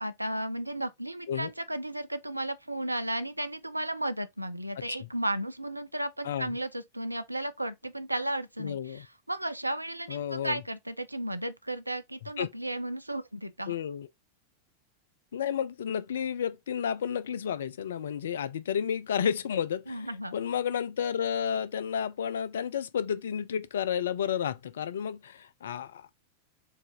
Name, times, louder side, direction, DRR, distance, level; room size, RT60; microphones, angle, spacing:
voice 1, 0.0-13.7 19.9-20.4, right 1 dB, 85° right, 0.4 m, -34 dB
voice 2, 4.8-5.1 6.2-6.6 8.6-9.1 10.1-10.6 12.4-12.5 13.7-14.1 15.3-26.1, left 8 dB, 65° left, 0.4 m, -31 dB
4.5 x 2.5 x 2.9 m
figure-of-eight pair, 90°, 0 cm